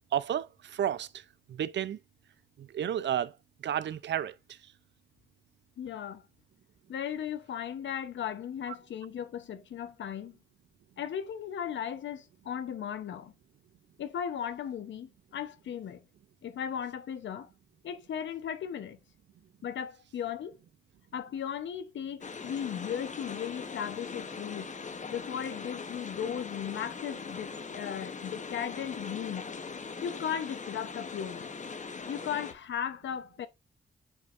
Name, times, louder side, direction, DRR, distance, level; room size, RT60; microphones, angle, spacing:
voice 1, 0.1-1.2 1.5-2.0 2.6-3.3 3.6-4.3, right 10 dB, 75° right, 0.5 m, -31 dB
voice 2, 5.8-6.2 6.9-10.4 11.0-13.3 14.0-16.0 16.4-17.5 17.8-19.0 19.6-20.6 21.1-24.7 25.1-29.4 30.0-31.5 32.1-33.5, left 8 dB, 85° left, 0.9 m, -36 dB
sound 1, 22.2-32.5, left 5 dB, 40° left, 0.9 m, -41 dB
8.0 x 4.8 x 2.5 m
cardioid pair, 70°, 19 cm